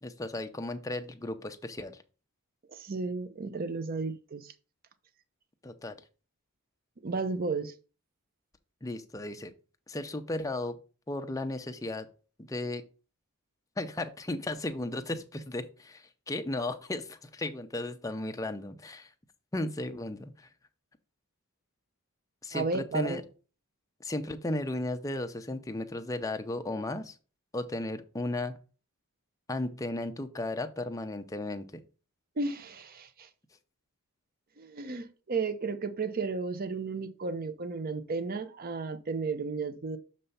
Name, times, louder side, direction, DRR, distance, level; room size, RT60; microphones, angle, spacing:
voice 1, 0.0-2.0 5.6-6.0 8.8-9.5 9.9-10.8 11.1-12.1 12.4-12.8 13.8-19.1 19.5-20.5 22.4-23.2 24.0-27.2 27.5-28.6 29.5-31.8, left 2 dB, 15° left, 0.5 m, -35 dB
voice 2, 2.7-4.5 7.0-7.7 22.5-23.2 32.4-33.3 34.6-40.0, right 4 dB, 40° right, 0.6 m, -33 dB
6.8 x 3.3 x 5.4 m
head